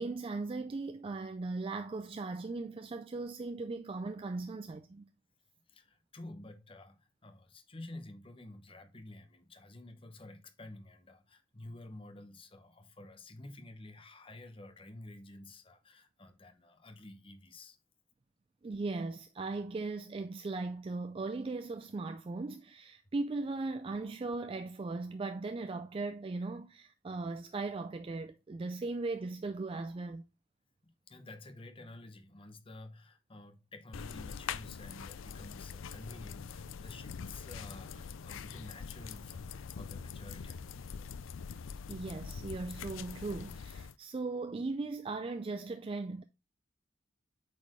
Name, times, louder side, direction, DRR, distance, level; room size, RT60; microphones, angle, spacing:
voice 1, 0.0-5.1 18.6-30.2 41.9-46.2, right 3 dB, 30° right, 0.3 m, -38 dB
voice 2, 5.7-17.8 31.1-41.1, left 2 dB, 25° left, 1.0 m, -51 dB
sound 1, 33.9-43.9, left 6 dB, 85° left, 0.4 m, -44 dB
8.1 x 4.3 x 3.2 m
head